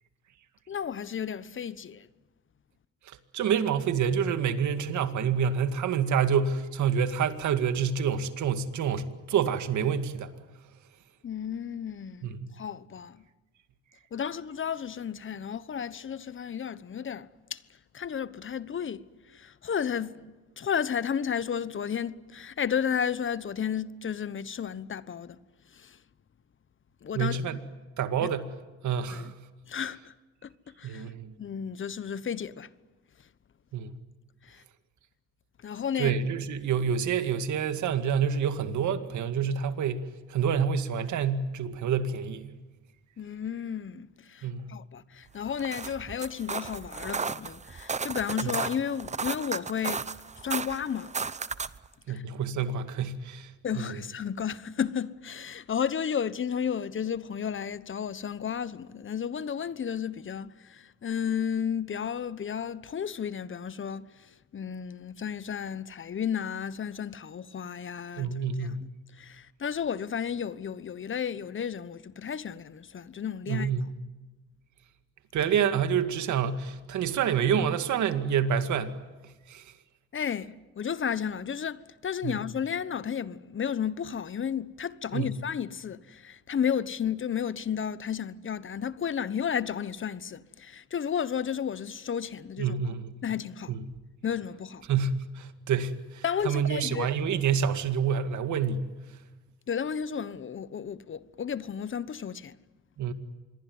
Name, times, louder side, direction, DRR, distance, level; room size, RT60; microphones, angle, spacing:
voice 1, 0.7-2.1 11.2-13.2 14.1-17.6 17.9-19.0 19.3-25.4 25.7-26.0 27.0-27.6 28.2-28.3 29.1-29.3 29.7-30.1 30.4-30.5 30.8-31.0 31.4-32.7 34.4-34.6 35.6-36.2 43.2-50.1 50.4-51.1 52.1-52.2 53.6-64.0 64.5-68.8 69.2-73.7 80.1-92.7 93.2-93.8 94.2-94.9 96.2-97.1 99.7-102.5, left 8 dB, 40° left, 1.1 m, -33 dB
voice 2, 3.3-10.3 12.2-12.5 27.1-27.6 28.0-28.5 28.8-29.3 30.8-31.3 33.7-33.9 36.0-42.6 44.4-44.7 48.4-48.5 52.1-53.5 53.8-54.0 68.2-68.8 73.5-73.9 75.3-79.0 79.5-79.6 82.2-82.4 85.1-85.3 92.6-93.1 93.7-93.8 94.9-98.9 103.0-103.1, right 7 dB, 70° right, 2.1 m, -28 dB
sound 1, 45.5-51.9, right 5 dB, 25° right, 0.8 m, -34 dB
26.5 x 22.0 x 9.6 m
cardioid pair, 90°, 30 cm